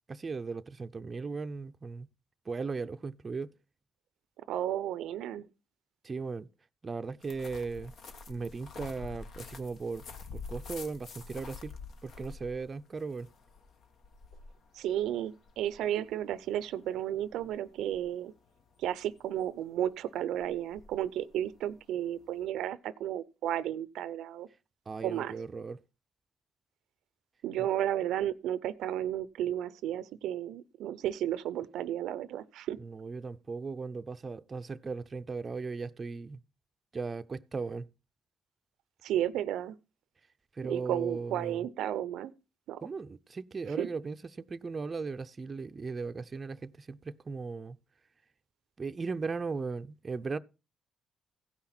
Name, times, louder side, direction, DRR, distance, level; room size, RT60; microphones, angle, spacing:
voice 1, 0.1-2.1 2.5-3.5 6.0-6.5 6.8-7.9 8.3-10.0 10.3-11.7 12.0-13.3 24.9-25.8 27.6-27.7 32.8-36.4 36.9-37.8 40.6-41.7 42.8-47.8 48.8-50.4, right 4 dB, 35° right, 0.5 m, -37 dB
voice 2, 4.4-5.5 14.8-18.3 18.8-24.5 25.0-25.3 27.4-32.8 39.0-39.8 40.6-42.3 42.7-42.8 43.8-43.9, right 11 dB, 85° right, 0.5 m, -33 dB
sound 1, 7.2-22.4, left 4 dB, 65° left, 1.3 m, -48 dB
16.0 x 5.8 x 4.2 m
cardioid pair, 90°, 0 cm